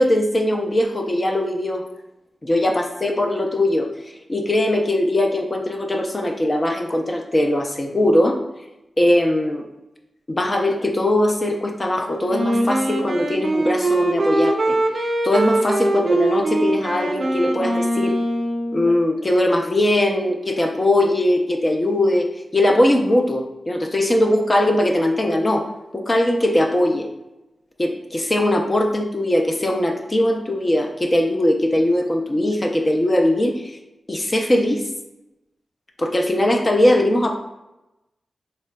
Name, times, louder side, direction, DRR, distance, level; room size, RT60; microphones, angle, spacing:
voice 1, 0.0-1.8 2.4-3.9 4.3-8.4 9.0-9.6 10.3-18.2 18.7-22.3 22.5-25.7 25.9-27.1 27.8-33.8 34.1-34.8 36.0-37.3, left 1 dB, 25° left, 3 dB, 0.4 m, -20 dB
Wind instrument woodwind instrument, 12.3-19.0, right 2 dB, 50° right, 0.5 m, -22 dB
3.7 x 3.3 x 2.2 m, 0.95 s
wide cardioid pair, 115°, 0 cm